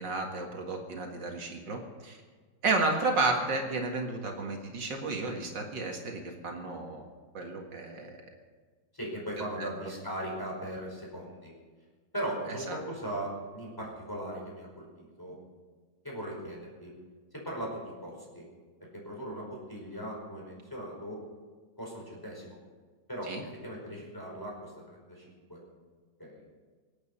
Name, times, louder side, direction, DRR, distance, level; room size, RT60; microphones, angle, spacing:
voice 1, 0.0-2.2 2.6-7.1 7.3-8.2 9.6-9.7 12.7-12.8 23.2-23.4, right 3 dB, 75° right, 2 dB, 2.6 m, -32 dB
voice 2, 8.9-11.5 12.1-15.4 16.0-16.9 17.3-18.4 18.9-21.2 21.8-22.6 23.1-23.3 23.6-25.6 26.2-26.4, right 1 dB, 10° left, -2 dB, 5.1 m, -39 dB
26.0 x 8.9 x 5.6 m, 1.4 s
omnidirectional pair, 2.0 m